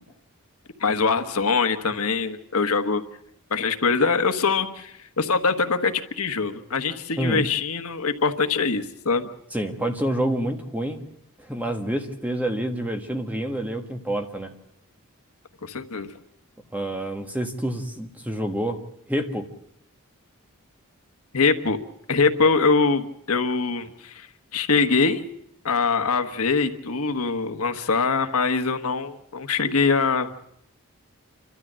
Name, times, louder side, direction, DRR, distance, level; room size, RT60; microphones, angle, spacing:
voice 1, 0.8-3.0 3.5-9.3 15.6-16.1 21.3-21.8 22.1-25.2 25.6-30.3, left 4 dB, 80° left, 7 dB, 1.3 m, -23 dB
voice 2, 9.5-11.0 11.4-14.5 16.7-18.8 19.1-19.5, right 1 dB, 5° right, 4 dB, 1.6 m, -27 dB
28.5 x 13.0 x 7.5 m, 0.73 s
head